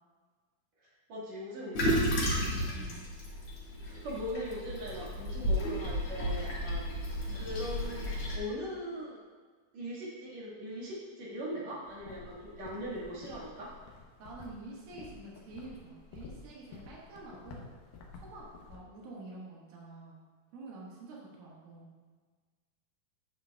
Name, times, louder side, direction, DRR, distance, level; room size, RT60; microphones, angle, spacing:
voice 1, 1.1-2.9 3.8-9.2 9.7-13.7, equal, 55° right, -7 dB, 2.8 m, -40 dB
Toilet flush, 1.7-8.4, equal, 50° left, 2.1 m, -33 dB
voice 2, 2.4-3.0 14.2-17.7 18.1-20.2 20.5-21.9, right 2 dB, 85° right, -4 dB, 3.3 m, -48 dB
sound 1, 11.8-18.8, left 4 dB, 90° left, 2.7 m, -51 dB
9.7 x 8.6 x 2.3 m, 1.5 s
omnidirectional pair, 4.0 m